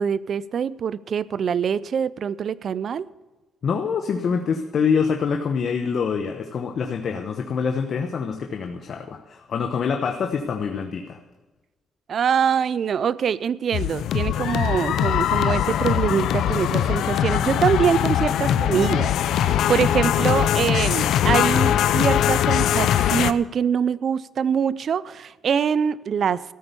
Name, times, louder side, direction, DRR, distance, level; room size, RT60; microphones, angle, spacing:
voice 1, 0.0-3.1 12.1-26.4, right 7 dB, 55° right, 0.5 m, -24 dB
voice 2, 3.6-11.2 18.4-19.0, left 6 dB, 55° left, 1.1 m, -25 dB
sound 1, 13.7-23.3, left 10 dB, 80° left, 0.5 m, -21 dB
14.0 x 8.8 x 6.9 m
cardioid pair, 90°, 0 cm